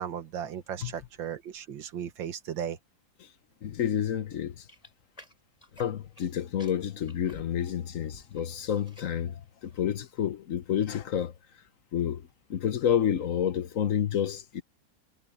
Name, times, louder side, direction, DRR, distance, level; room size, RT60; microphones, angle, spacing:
voice 1, 0.0-2.8, right 9 dB, 85° right, 2.0 m, -36 dB
voice 2, 3.6-4.6 5.8-11.3 11.9-14.6, left 9 dB, 55° left, 1.1 m, -29 dB
sound 1, 4.7-6.3 6.6-8.4 8.7-9.2 9.6-10.0, left 1 dB, 20° left, 6.6 m, -54 dB
omnidirectional pair, 2.0 m